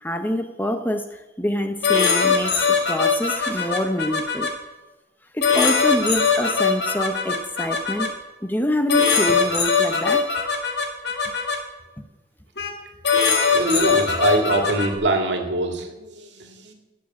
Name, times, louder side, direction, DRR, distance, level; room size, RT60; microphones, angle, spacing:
voice 1, 0.0-4.5 5.3-8.1 8.4-10.3 12.0-12.1, equal, 10° left, 7 dB, 0.7 m, -26 dB
sound 1, 1.8-4.5 5.4-8.1 8.9-11.6 12.6-12.7 13.0-14.9, left 5 dB, 60° left, 2.0 m, -21 dB
voice 2, 13.5-16.7, right 2 dB, 70° right, 4 dB, 2.2 m, -23 dB
17.5 x 7.4 x 7.4 m, 1.1 s
head